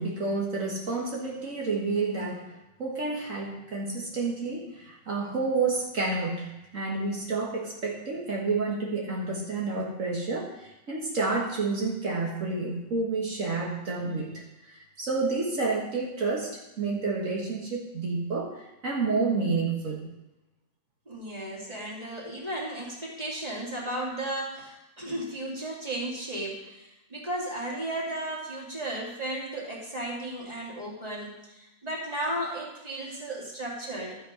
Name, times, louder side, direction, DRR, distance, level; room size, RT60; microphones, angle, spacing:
voice 1, 0.0-2.5 2.8-20.0, right 3 dB, 70° right, -3 dB, 2.0 m, -30 dB
voice 2, 21.1-34.2, right 1 dB, 30° right, -4 dB, 2.7 m, -34 dB
12.5 x 7.9 x 5.0 m, 0.97 s
omnidirectional pair, 1.4 m